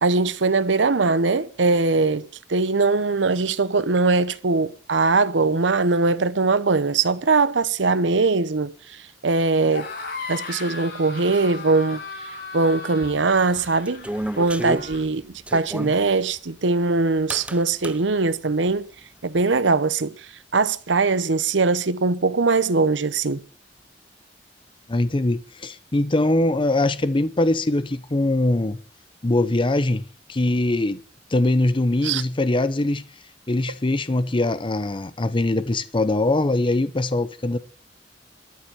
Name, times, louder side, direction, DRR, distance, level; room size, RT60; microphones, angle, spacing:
voice 1, 0.0-8.7 9.2-9.9 10.3-12.0 12.5-14.1 14.4-18.9 19.2-20.1 20.5-23.4 32.0-32.2, right 3 dB, 80° right, 0.9 m, -21 dB
sound 1, 9.6-15.0, left 3 dB, 75° left, 7.7 m, -36 dB
sound 2, 13.0-16.0 17.3-18.0, right 1 dB, 5° right, 0.6 m, -31 dB
voice 2, 24.9-28.8 29.2-31.0 31.3-33.0 33.5-37.6, left 2 dB, 30° left, 0.7 m, -22 dB
13.0 x 7.2 x 9.9 m
head